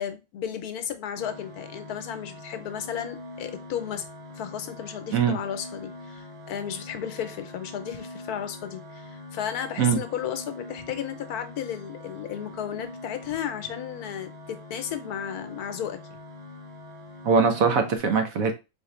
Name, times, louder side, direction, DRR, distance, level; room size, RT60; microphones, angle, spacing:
voice 1, 0.0-4.1 4.3-16.0, left 9 dB, 75° left, 1.2 m, -34 dB
sound 1, 1.1-18.0, left 2 dB, 25° right, 1.0 m, -43 dB
voice 2, 17.2-18.5, right 5 dB, 65° right, 1.1 m, -21 dB
4.2 x 3.6 x 3.1 m
omnidirectional pair, 1.7 m